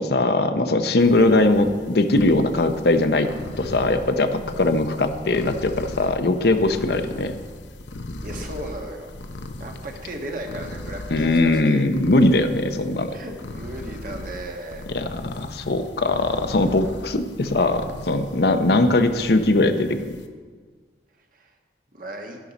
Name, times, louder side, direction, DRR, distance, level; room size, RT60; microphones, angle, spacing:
voice 1, 0.0-3.3 3.6-7.4 11.1-13.2 14.9-20.1, left 2 dB, 60° left, 8 dB, 0.7 m, -20 dB
sound 1, 1.0-20.3, left 1 dB, 90° left, 0.9 m, -38 dB
voice 2, 8.2-9.2 9.6-11.9 13.1-14.9 21.3-21.5 21.9-22.4, right 1 dB, 50° right, 2 dB, 1.4 m, -36 dB
12.5 x 11.0 x 4.1 m, 1.5 s
head